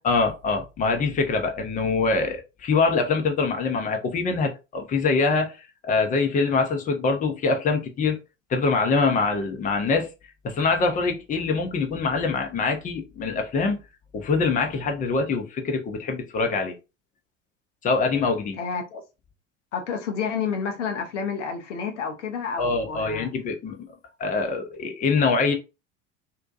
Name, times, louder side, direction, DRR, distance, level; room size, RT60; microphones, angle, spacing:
voice 1, 0.0-5.6 5.9-8.2 8.5-10.1 10.4-13.8 14.1-16.8 17.8-18.6 22.6-23.9 24.2-25.5, left 4 dB, 20° left, 0.6 m, -24 dB
voice 2, 18.6-19.0 19.7-23.3, left 6 dB, 65° left, 0.7 m, -30 dB
2.6 x 2.2 x 2.4 m
figure-of-eight pair, 75°, 39 cm